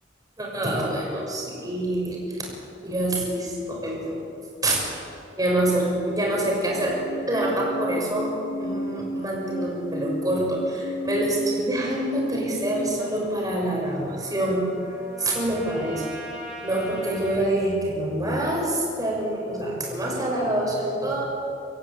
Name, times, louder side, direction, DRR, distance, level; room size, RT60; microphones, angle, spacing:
voice 1, 0.4-2.5 2.8-4.2 4.6-4.8 5.4-7.0 7.3-14.7 15.2-16.0 16.6-21.4, right 1 dB, 20° right, -2 dB, 6.4 m, -26 dB
sound 1, 5.7-13.0, right 1 dB, 65° left, 2.1 m, -33 dB
Trumpet, 13.0-17.5, equal, 5° right, 4.1 m, -41 dB
25.0 x 15.0 x 8.8 m, 2.6 s
head